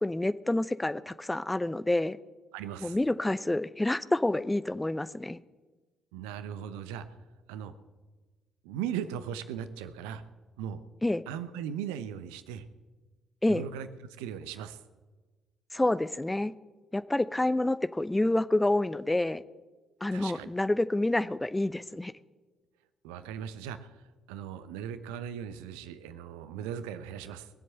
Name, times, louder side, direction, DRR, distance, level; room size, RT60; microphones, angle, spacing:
voice 1, 0.0-2.2 2.8-5.4 11.0-11.2 13.4-13.6 15.7-16.5 16.9-19.4 20.0-22.1, left 1 dB, 15° left, 16 dB, 0.7 m, -28 dB
voice 2, 2.5-3.0 6.1-7.1 7.5-7.7 8.6-10.2 10.6-10.8 11.3-12.7 13.5-13.9 14.2-14.8 20.1-20.5 23.0-27.5, right 9 dB, 70° right, 12 dB, 0.8 m, -38 dB
21.5 x 7.7 x 7.8 m, 1.3 s
figure-of-eight pair, 40°, 0 cm